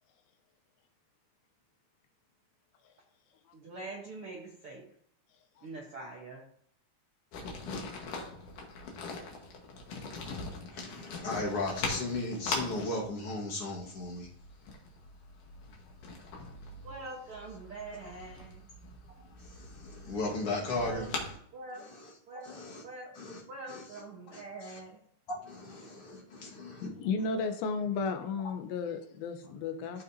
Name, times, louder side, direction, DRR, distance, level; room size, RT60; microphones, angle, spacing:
voice 1, 3.5-4.9 5.6-6.4 16.8-18.6 20.8-21.1 21.5-21.8 22.3-22.5 22.8-25.0, right 3 dB, 60° right, 1.4 m, -44 dB
sound 1, 7.3-21.3, left 3 dB, 65° left, 2.9 m, -42 dB
voice 2, 10.7-14.3 16.7-16.8 19.2-21.4 21.7-22.1 22.4-22.8 23.1-23.4 23.7-24.0 24.3-24.8 25.3-26.9 29.4-29.6, left 2 dB, 50° left, 2.3 m, -37 dB
voice 3, 26.8-30.0, left 4 dB, 90° left, 2.8 m, -33 dB
14.0 x 5.3 x 2.8 m
omnidirectional pair, 4.2 m